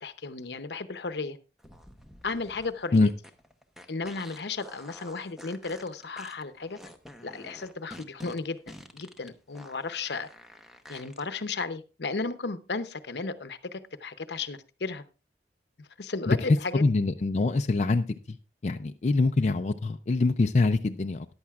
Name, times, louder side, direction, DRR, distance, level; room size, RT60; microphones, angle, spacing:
voice 1, 0.0-1.4 2.2-3.1 3.9-6.8 7.2-10.3 10.9-15.0 15.8-16.8, left 4 dB, 70° left, 12 dB, 0.8 m, -34 dB
sound 1, 1.6-11.2, equal, ahead, 0.8 m, -49 dB
voice 2, 16.7-18.4 18.6-21.3, left 3 dB, 40° left, 6 dB, 0.4 m, -24 dB
14.5 x 10.5 x 2.4 m, 0.32 s
head